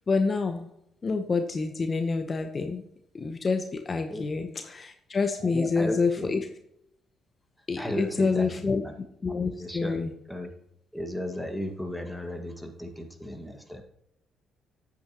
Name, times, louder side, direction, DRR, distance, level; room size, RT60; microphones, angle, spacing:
voice 1, 0.1-0.7 1.0-2.8 3.1-6.4 7.7-8.8 9.2-10.1, left 4 dB, 40° left, 6 dB, 0.9 m, -27 dB
voice 2, 5.4-6.3 7.8-8.9 9.3-10.0 10.3-10.5 10.9-13.8, equal, ahead, 4 dB, 1.8 m, -35 dB
9.0 x 8.6 x 2.9 m, 0.77 s
supercardioid pair, 65°, 0 cm